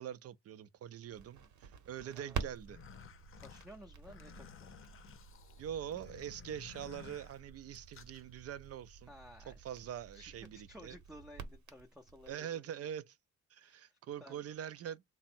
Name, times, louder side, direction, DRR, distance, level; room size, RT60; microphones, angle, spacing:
voice 1, 0.0-2.8 5.6-9.1 9.5-11.0 12.3-13.2 13.5-15.0, right 10 dB, 55° right, 0.5 m, -44 dB
Crackle, 1.1-12.3, right 7 dB, 70° right, 0.9 m, -49 dB
sound 1, 2.6-8.2, left 8 dB, 45° left, 0.6 m, -55 dB
voice 2, 3.4-4.7 9.1-9.6 10.1-12.8 13.5-14.5, equal, ahead, 0.5 m, -56 dB
3.5 x 2.0 x 4.2 m
cardioid pair, 90°, 30 cm